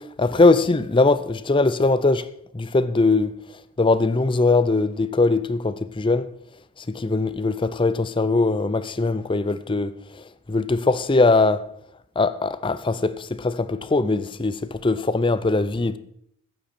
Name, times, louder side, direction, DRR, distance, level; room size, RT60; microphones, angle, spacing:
voice 1, 0.0-2.3 2.5-3.3 3.8-6.3 6.9-9.9 10.5-11.6 12.2-16.0, left 3 dB, 25° left, 0.5 m, -21 dB
14.5 x 8.8 x 4.3 m
head